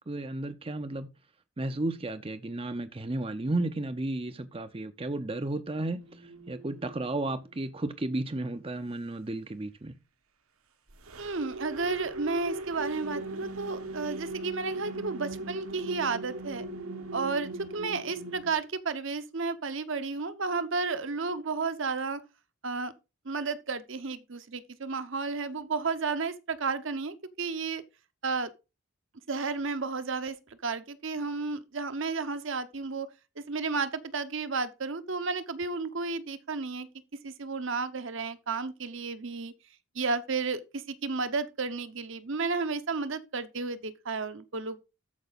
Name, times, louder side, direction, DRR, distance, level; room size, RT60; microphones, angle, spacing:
voice 1, 0.1-1.1 1.6-9.9, right 2 dB, 25° right, 0.6 m, -33 dB
sound 1, 6.0-7.8 10.9-18.5, right 2 dB, 80° right, 1.4 m, -39 dB
voice 2, 11.2-16.7 17.1-22.2 22.6-22.9 23.2-27.8 28.2-28.5 29.3-33.1 33.4-36.9 37.2-39.5 39.9-44.8, right 4 dB, 60° right, 0.9 m, -32 dB
13.5 x 5.3 x 4.1 m
head